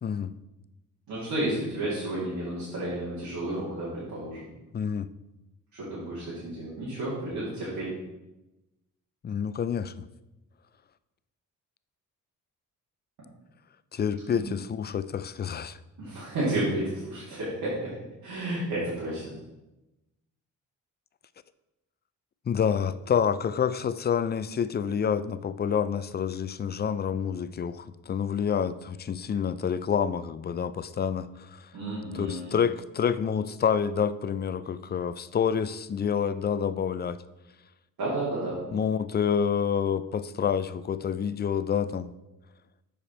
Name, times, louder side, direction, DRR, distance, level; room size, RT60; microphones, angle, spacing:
voice 1, 0.0-0.3 4.7-5.1 9.2-10.1 13.9-15.8 22.5-31.7 32.1-37.2 38.7-42.1, left 7 dB, 30° left, 15 dB, 0.4 m, -28 dB
voice 2, 1.1-4.5 5.7-7.9 14.3-14.4 16.0-17.9 18.2-19.3 31.7-32.5 38.0-38.6, right 1 dB, 70° right, -8 dB, 2.6 m, -31 dB
6.7 x 5.0 x 4.3 m, 0.97 s
supercardioid pair, 60°, 37 cm